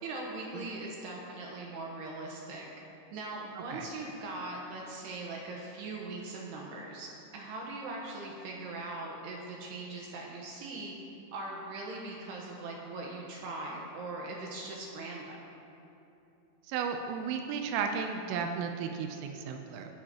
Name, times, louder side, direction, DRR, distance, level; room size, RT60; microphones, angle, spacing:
voice 1, 0.0-2.7 3.1-10.9 11.3-15.4, right 2 dB, 70° right, -2 dB, 2.8 m, -40 dB
voice 2, 3.6-3.9 16.7-19.9, right 6 dB, 85° right, 4 dB, 3.3 m, -34 dB
23.0 x 10.0 x 2.9 m, 2.8 s
omnidirectional pair, 5.6 m